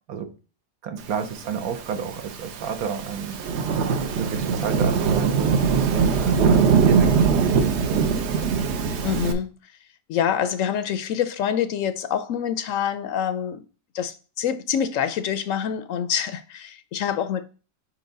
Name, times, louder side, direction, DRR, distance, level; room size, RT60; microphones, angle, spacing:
voice 1, 0.8-3.4 4.2-5.5 5.8-8.0, right 7 dB, 75° right, 1.4 m, -31 dB
Thunderstorm / Rain, 1.6-9.3, right 5 dB, 55° right, 0.9 m, -21 dB
voice 2, 9.0-9.7 10.1-13.7 13.9-17.5, left 9 dB, 70° left, 0.9 m, -26 dB
5.6 x 4.7 x 3.8 m
omnidirectional pair, 1.6 m